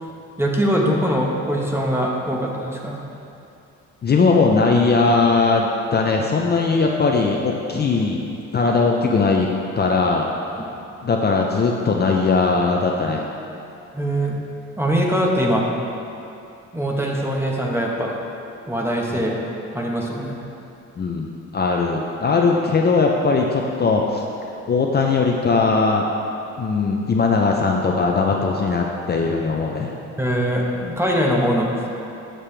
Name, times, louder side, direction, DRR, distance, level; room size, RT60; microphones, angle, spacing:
voice 1, 0.4-3.0 10.6-10.7 13.9-14.4 14.8-15.6 16.7-18.1 18.7-19.4 19.7-20.4 30.2-31.7, equal, 10° right, -1 dB, 1.0 m, -22 dB
voice 2, 4.0-8.2 8.5-9.5 9.7-10.3 11.0-13.3 19.1-19.3 21.0-21.3 21.5-24.2 24.7-26.0 26.6-30.0, left 4 dB, 35° left, 0 dB, 0.5 m, -19 dB
7.5 x 6.6 x 3.3 m, 2.8 s
cardioid pair, 90°, 30 cm